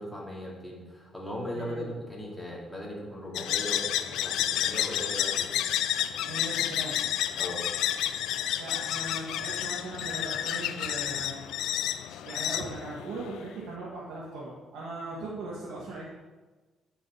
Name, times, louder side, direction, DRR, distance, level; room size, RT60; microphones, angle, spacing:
voice 1, 0.0-5.6 7.3-7.7, equal, 5° left, -3 dB, 2.8 m, -38 dB
voice 2, 1.5-1.9 6.3-7.0 8.6-11.4 12.3-16.0, right 2 dB, 75° right, -7 dB, 2.0 m, -39 dB
sound 1, 3.3-13.5, left 11 dB, 85° left, 0.4 m, -30 dB
9.4 x 6.1 x 4.9 m, 1.3 s
cardioid pair, 90°, 0 cm